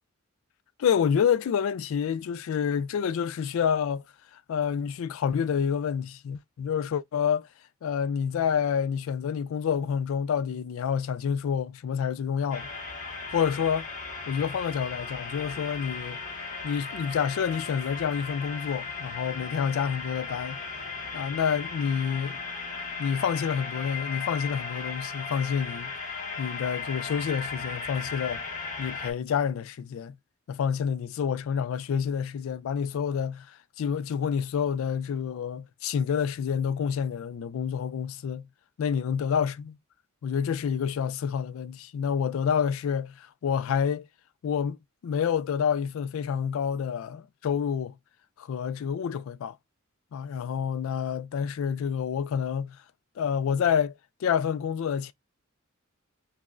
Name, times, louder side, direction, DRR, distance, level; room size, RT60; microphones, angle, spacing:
voice 1, 0.8-4.0 4.3-7.5 7.8-12.7 13.3-13.9 14.3-16.2 16.6-20.6 21.1-22.4 23.0-25.9 26.4-28.4 28.8-30.2 30.5-38.5 38.8-39.8 40.2-44.1 44.4-48.0 48.4-49.6 50.1-52.8 53.2-55.1, left 7 dB, 70° left, 0.3 m, -28 dB
sound 1, 12.5-29.1, left 4 dB, 40° left, 1.0 m, -36 dB
5.8 x 2.1 x 2.4 m
head